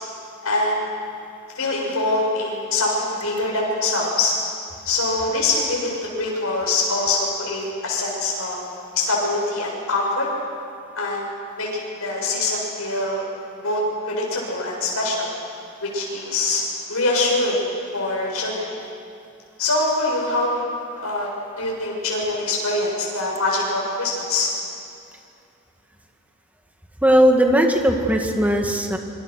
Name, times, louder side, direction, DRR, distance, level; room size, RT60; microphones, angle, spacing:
voice 1, 0.4-0.9 1.5-4.4 4.8-8.6 8.9-10.3 11.0-11.2 11.6-13.2 13.6-15.3 15.8-16.6 16.9-17.7 17.9-18.7 19.6-20.6 20.9-21.3 21.6-24.5, left 2 dB, 70° left, -2 dB, 7.6 m, -23 dB
voice 2, 27.0-29.0, equal, 5° right, 3 dB, 2.1 m, -17 dB
26.5 x 26.0 x 6.6 m, 2.5 s
head